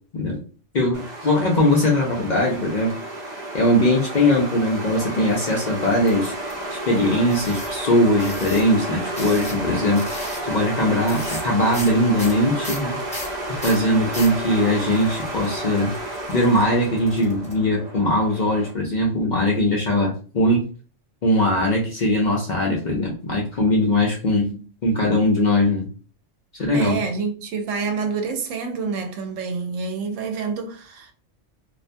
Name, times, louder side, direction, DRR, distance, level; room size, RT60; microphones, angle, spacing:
voice 1, 0.7-3.0 3.5-6.3 6.9-10.1 10.4-13.0 13.6-15.9 16.3-20.6 21.2-24.5 24.8-25.9 26.6-27.0, left 1 dB, 55° left, 0.5 m, -20 dB
sound 1, 0.9-18.7, right 1 dB, 55° right, 0.5 m, -31 dB
sound 2, 6.1-6.5 7.3-7.7 8.2-8.6 9.2-9.7 10.0-10.4 11.1-11.5 11.7-11.9 12.2-14.4 14.9-17.5, left 1 dB, 5° left, 0.6 m, -35 dB
voice 2, 26.7-31.1, right 5 dB, 85° right, 1.0 m, -27 dB
2.4 x 2.2 x 2.5 m
omnidirectional pair, 1.3 m